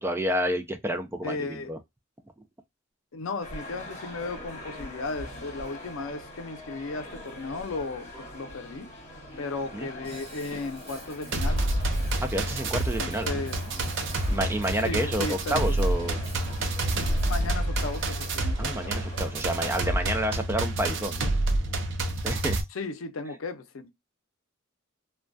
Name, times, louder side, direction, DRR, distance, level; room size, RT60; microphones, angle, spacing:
voice 1, 0.0-1.8 9.7-9.9 12.2-13.3 14.3-16.2 18.6-21.3 22.2-22.6, equal, 10° right, 0.4 m, -29 dB
voice 2, 1.2-1.7 3.1-8.9 9.4-11.7 13.0-13.6 14.7-15.9 17.2-19.0 22.7-23.9, left 3 dB, 80° left, 0.5 m, -35 dB
sound 1, 3.4-20.2, left 1 dB, 35° left, 1.1 m, -43 dB
Drum kit / Drum, 10.0-17.5, right 1 dB, 30° right, 0.9 m, -47 dB
sound 2, 11.3-22.6, right 2 dB, 65° right, 0.5 m, -28 dB
2.2 x 2.2 x 2.5 m
head